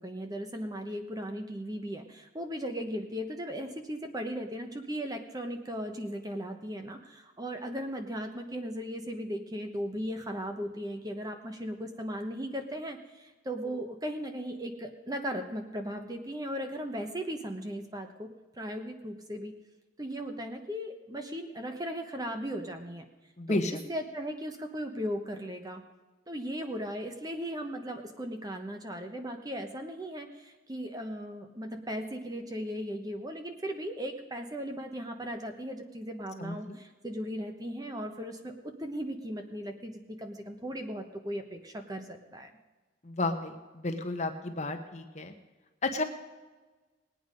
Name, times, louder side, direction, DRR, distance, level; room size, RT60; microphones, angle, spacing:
voice 1, 0.0-18.3 18.5-19.5 20.0-23.1 23.5-23.6 23.9-25.8 26.3-42.5, equal, 20° right, 5 dB, 1.0 m, -37 dB
voice 2, 23.4-23.8 36.4-36.8 43.0-45.3 45.8-46.0, left 2 dB, 35° left, 6 dB, 1.0 m, -32 dB
19.5 x 8.8 x 5.3 m, 1.2 s
head